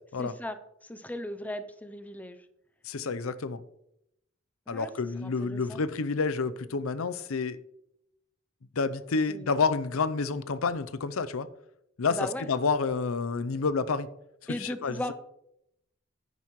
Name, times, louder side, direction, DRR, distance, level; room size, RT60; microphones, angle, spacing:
voice 1, 0.2-2.5 4.7-4.9 5.2-5.8 9.3-9.5 12.1-12.5 14.5-15.1, left 1 dB, 10° left, 0.5 m, -37 dB
voice 2, 2.8-3.6 4.7-7.6 8.8-11.5 12.0-12.2 12.5-14.1 14.4-15.1, left 4 dB, 80° left, 0.6 m, -29 dB
10.0 x 9.5 x 3.1 m
head